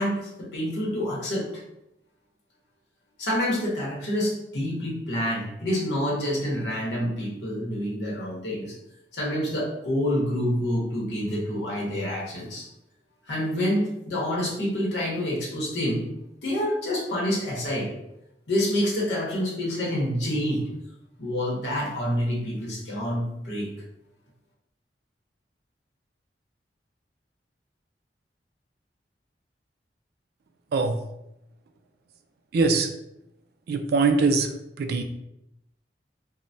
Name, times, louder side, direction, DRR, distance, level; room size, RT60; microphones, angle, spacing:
voice 1, 0.0-1.5 3.2-8.7 9.1-12.7 13.3-16.1 16.4-17.9 18.5-20.7 21.2-23.7, equal, 75° left, -5 dB, 0.8 m, -27 dB
voice 2, 32.5-32.9 33.7-34.5 34.8-35.0, right 4 dB, 60° right, 7 dB, 0.3 m, -22 dB
3.2 x 2.1 x 2.6 m, 0.84 s
head